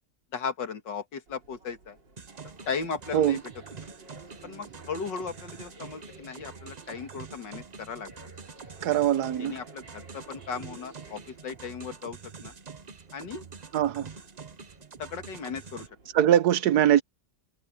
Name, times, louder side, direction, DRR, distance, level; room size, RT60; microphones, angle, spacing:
voice 1, 0.3-2.0 2.7-3.4 4.4-8.1 9.4-12.2 12.4-12.5 13.1-13.4 15.0-15.9, left 5 dB, 80° left, 2.5 m, -36 dB
sound 1, 1.3-16.3, right 3 dB, 85° right, 4.2 m, -54 dB
sound 2, 2.2-15.9, right 5 dB, 35° right, 0.7 m, -46 dB
voice 2, 8.8-9.5 13.7-14.1 16.1-17.0, right 11 dB, 65° right, 1.3 m, -22 dB
omnidirectional pair, 1.9 m